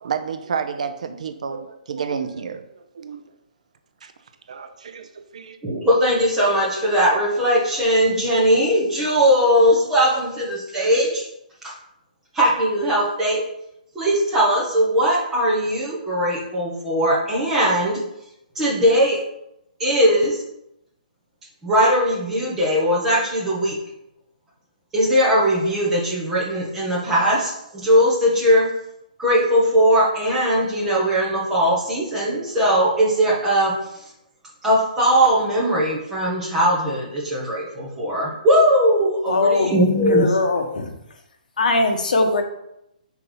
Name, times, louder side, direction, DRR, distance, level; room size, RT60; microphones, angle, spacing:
voice 1, 0.0-3.2 4.0-4.1 4.5-5.6, right 6 dB, 50° right, 8 dB, 0.6 m, -30 dB
voice 2, 5.6-11.3 11.6-11.7 12.3-13.4 13.9-18.0 18.5-19.2 19.8-20.4 21.6-23.8 24.9-28.7 29.2-34.1 34.6-40.4, equal, 5° right, -6 dB, 1.2 m, -19 dB
voice 3, 39.3-39.7 40.1-40.9 41.6-42.4, left 3 dB, 65° left, 4 dB, 1.2 m, -20 dB
5.3 x 4.4 x 5.6 m, 0.83 s
hypercardioid pair, 175°, 5 cm